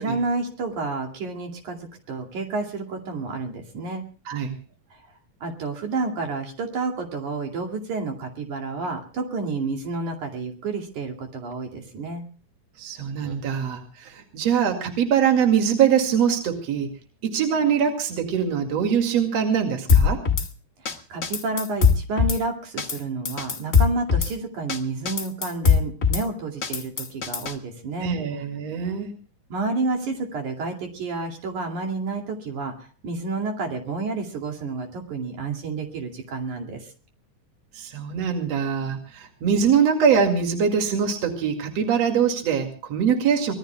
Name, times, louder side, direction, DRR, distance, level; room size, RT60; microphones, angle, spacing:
voice 1, 0.0-4.0 4.9-5.0 5.4-12.2 20.8-28.1 29.5-36.9, right 3 dB, 75° right, 2 dB, 4.0 m, -30 dB
voice 2, 12.8-16.9 17.2-20.2 28.0-29.1 37.8-43.5, right 7 dB, 60° right, 4 dB, 3.2 m, -23 dB
Drum kit / Snare drum, 19.9-20.5 20.9-21.0 21.2-22.4 22.8-23.0 23.3-24.3 24.7-24.8 25.1-26.2 26.6-27.5, left 5 dB, 40° left, 1.1 m, -20 dB
25.0 x 20.0 x 2.3 m, 0.38 s
omnidirectional pair, 3.4 m